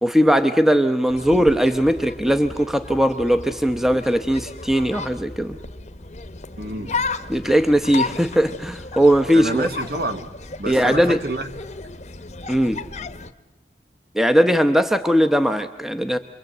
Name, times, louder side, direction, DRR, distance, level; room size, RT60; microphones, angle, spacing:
voice 1, 0.0-5.6 7.3-9.7 10.7-11.2 12.5-12.8 14.1-16.2, equal, ahead, 7 dB, 0.8 m, -19 dB
sound 1, 1.1-13.3, left 3 dB, 40° left, 1.0 m, -34 dB
voice 2, 6.6-7.0 9.3-10.3 10.6-11.5, right 1 dB, 55° right, 7 dB, 1.7 m, -28 dB
28.0 x 22.5 x 7.9 m, 1.1 s
head